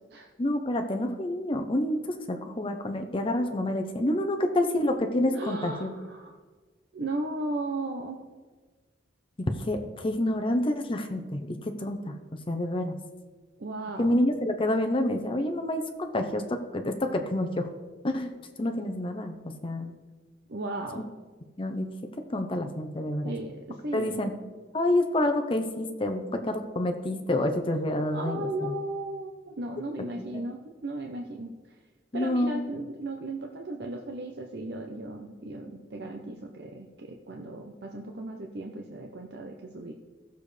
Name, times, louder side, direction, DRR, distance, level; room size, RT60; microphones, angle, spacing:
voice 1, 0.4-5.9 9.4-12.1 12.5-13.0 14.0-17.7 18.0-18.3 18.6-19.9 21.6-21.9 22.3-23.3 23.9-24.3 24.7-28.8 30.3-30.4 32.1-32.6, left 1 dB, 30° left, 5 dB, 0.7 m, -28 dB
voice 2, 5.3-6.4 6.9-8.2 13.6-14.2 20.5-21.1 23.2-24.3 28.1-31.6 32.1-39.9, right 2 dB, 65° right, 2 dB, 0.7 m, -36 dB
16.0 x 6.8 x 3.3 m, 1.4 s
head